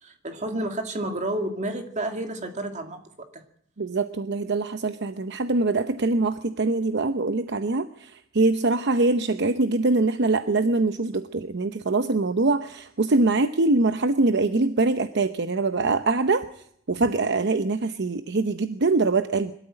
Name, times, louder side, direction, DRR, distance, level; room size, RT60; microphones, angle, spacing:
voice 1, 0.0-3.4, right 1 dB, 35° right, 5 dB, 2.4 m, -31 dB
voice 2, 3.8-16.4 16.9-19.5, right 3 dB, 60° right, 10 dB, 0.8 m, -23 dB
22.5 x 13.0 x 8.9 m, 0.69 s
head